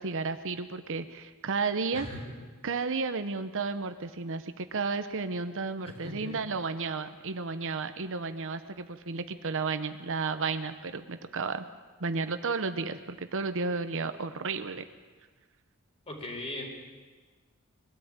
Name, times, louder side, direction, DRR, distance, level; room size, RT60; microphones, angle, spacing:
voice 1, 0.0-2.1 2.6-11.7 12.0-14.8, right 4 dB, 65° right, 10 dB, 0.9 m, -32 dB
voice 2, 1.9-2.3 6.0-6.3 16.1-16.7, left 1 dB, 30° left, 1 dB, 4.1 m, -38 dB
21.5 x 13.5 x 8.8 m, 1.4 s
head